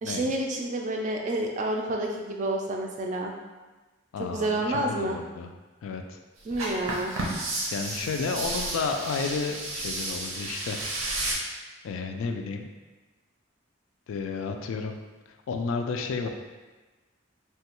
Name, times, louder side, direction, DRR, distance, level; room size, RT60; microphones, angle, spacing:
voice 1, 0.0-3.3 4.2-5.2 6.5-7.1, right 1 dB, 35° right, 1 dB, 0.3 m, -29 dB
voice 2, 4.1-5.5 5.8-6.2 7.7-10.8 11.8-12.7 14.1-15.0 15.3-16.3, left 4 dB, 85° left, 5 dB, 0.3 m, -32 dB
sound 1, 6.5-11.3, right 2 dB, 90° right, 0.6 m, -32 dB
3.2 x 2.2 x 2.9 m, 1.2 s
head